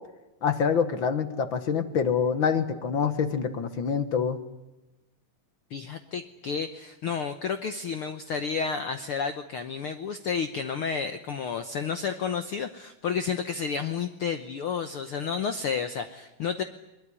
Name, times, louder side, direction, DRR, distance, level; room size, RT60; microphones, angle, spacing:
voice 1, 0.4-4.4, left 6 dB, 50° left, 10 dB, 1.6 m, -26 dB
voice 2, 5.7-16.6, left 6 dB, 70° left, 9 dB, 1.3 m, -31 dB
22.0 x 21.5 x 9.8 m, 1.0 s
omnidirectional pair, 3.7 m